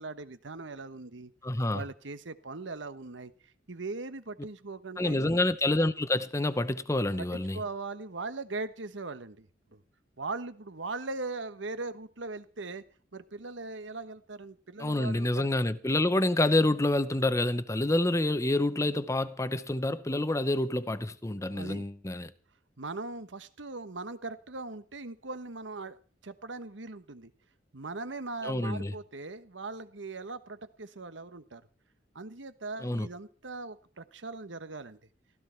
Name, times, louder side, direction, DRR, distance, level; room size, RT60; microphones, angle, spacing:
voice 1, 0.0-1.3 1.7-3.3 3.7-5.4 7.2-9.5 9.7-9.8 10.2-12.8 13.1-15.5 21.5-21.9 22.8-26.0 26.2-27.3 27.7-31.6 32.1-35.0, right 3 dB, 75° right, 1.2 m, -40 dB
voice 2, 1.4-1.8 5.0-7.6 14.8-22.3 28.4-28.9 32.8-33.1, left 1 dB, 15° left, 0.7 m, -28 dB
16.0 x 13.5 x 4.5 m
head